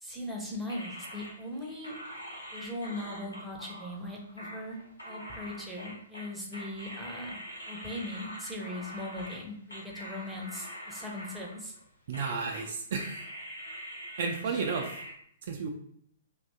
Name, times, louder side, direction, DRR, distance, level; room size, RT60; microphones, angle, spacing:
voice 1, 0.0-1.9 2.5-4.8 5.0-7.4 7.7-11.7 14.5-14.6, left 1 dB, 5° right, -3 dB, 0.6 m, -39 dB
sound 1, 0.7-9.4 9.7-11.8 12.1-12.7 13.0-15.1, equal, 85° left, 0.9 m, -44 dB
voice 2, 12.1-13.2 14.2-15.0 15.5-15.7, right 5 dB, 45° right, 3 dB, 0.3 m, -32 dB
2.6 x 2.2 x 2.6 m, 0.67 s
figure-of-eight pair, 115°, 0 cm